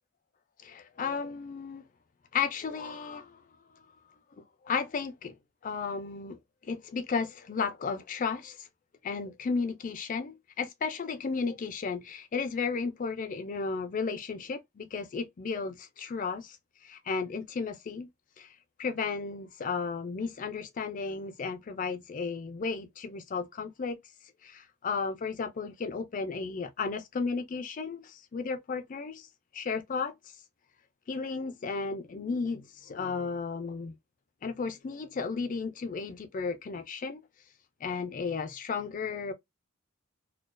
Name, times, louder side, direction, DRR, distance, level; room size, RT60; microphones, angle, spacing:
voice 1, 0.6-1.8 2.3-3.4 4.6-5.3 5.6-8.7 9.0-16.6 16.8-18.1 18.4-18.5 18.8-24.0 24.4-29.2 29.5-30.1 31.1-33.9 34.4-37.2 37.8-39.3, left 5 dB, 40° left, 0.4 m, -34 dB
2.3 x 2.2 x 2.4 m
head